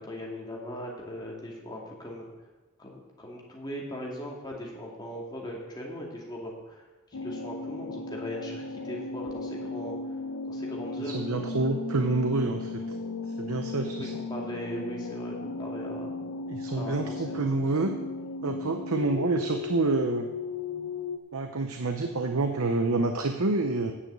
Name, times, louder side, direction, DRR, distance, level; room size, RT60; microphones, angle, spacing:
voice 1, 0.0-2.3 2.8-6.8 7.1-9.9 10.5-11.2 14.0-16.1 16.7-17.5, equal, 20° left, -2 dB, 2.3 m, -39 dB
sound 1, 7.1-21.2, left 3 dB, 80° left, 0.8 m, -36 dB
voice 2, 11.0-12.8 13.4-14.1 16.5-17.9 18.4-20.3 21.3-23.9, right 3 dB, 80° right, 6 dB, 0.8 m, -28 dB
9.9 x 7.9 x 7.6 m, 1.2 s
head